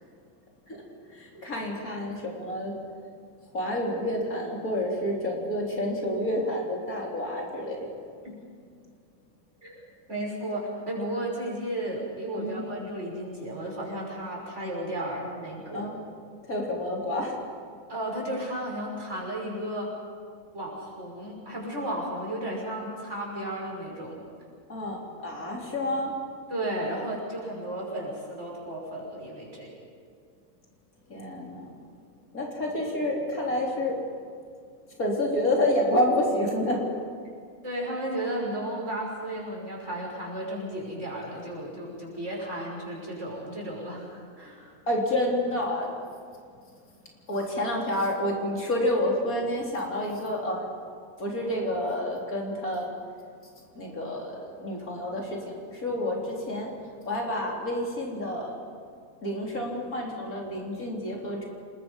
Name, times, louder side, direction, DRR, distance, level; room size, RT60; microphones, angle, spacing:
voice 1, 1.1-2.8 3.5-8.0 12.4-12.6 15.7-16.0 16.4-17.4 24.7-26.2 31.1-31.8 32.3-34.0 34.9-36.9 44.9-46.0 47.3-50.7 51.2-52.9 53.8-56.7 57.1-58.6 59.2-61.5, left 1 dB, 75° left, -2 dB, 4.2 m, -29 dB
voice 2, 9.6-15.9 17.9-19.9 20.5-24.2 26.5-29.8 37.6-44.7, right 1 dB, 50° right, -3 dB, 6.5 m, -34 dB
28.0 x 21.0 x 5.5 m, 2.1 s
omnidirectional pair, 1.5 m